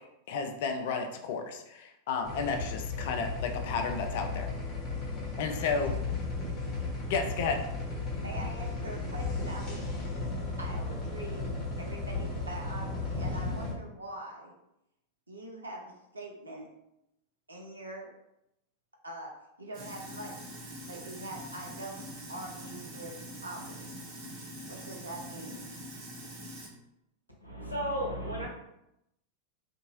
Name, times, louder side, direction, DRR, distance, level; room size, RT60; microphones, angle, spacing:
voice 1, 0.3-4.5 5.4-5.9 7.0-7.7, left 5 dB, 50° left, 5 dB, 0.4 m, -32 dB
sound 1, 2.2-13.7, left 3 dB, 30° left, 1.2 m, -35 dB
voice 2, 8.2-9.9 10.6-11.5 11.8-14.5 15.3-16.7 17.5-18.1 19.0-20.4 20.8-23.9 24.7-25.7, right 1 dB, 80° right, 0 dB, 0.6 m, -43 dB
Sink (filling or washing), 19.7-26.7, right 1 dB, 40° right, 0.9 m, -44 dB
voice 3, 27.4-28.5, equal, 90° left, -2 dB, 0.7 m, -33 dB
2.7 x 2.6 x 2.8 m, 0.83 s
figure-of-eight pair, 90°, 0 cm